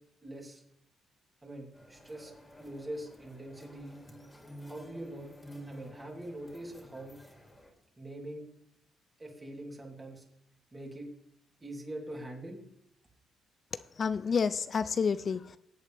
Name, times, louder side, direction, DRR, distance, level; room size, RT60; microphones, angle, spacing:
voice 1, 0.2-0.6 1.4-2.3 2.6-4.0 4.6-5.3 5.7-7.2 8.0-8.4 9.2-10.2 10.7-11.1 11.6-12.6, right 1 dB, 20° right, -1 dB, 3.2 m, -43 dB
sound 1, 1.7-7.7, equal, 15° left, 2.9 m, -50 dB
voice 2, 13.7-15.6, left 6 dB, 45° left, 14 dB, 0.4 m, -30 dB
17.5 x 8.3 x 3.4 m, 0.74 s
cardioid pair, 90°, 0 cm